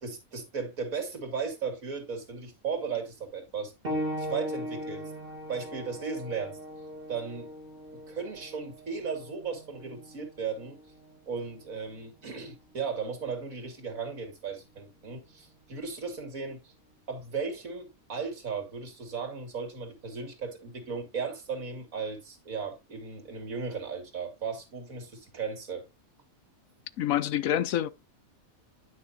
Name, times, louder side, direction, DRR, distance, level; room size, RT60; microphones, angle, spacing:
voice 1, 0.0-3.7 4.2-5.1 5.5-6.6 7.1-7.5 7.9-10.8 11.3-16.7 17.1-25.8, right 5 dB, 70° right, 2.6 m, -36 dB
sound 1, 3.8-14.1 15.0-15.1 15.9-16.0, equal, 40° right, 2.3 m, -40 dB
voice 2, 27.0-27.9, left 11 dB, 75° left, 1.0 m, -27 dB
9.9 x 6.3 x 2.7 m
omnidirectional pair, 1.5 m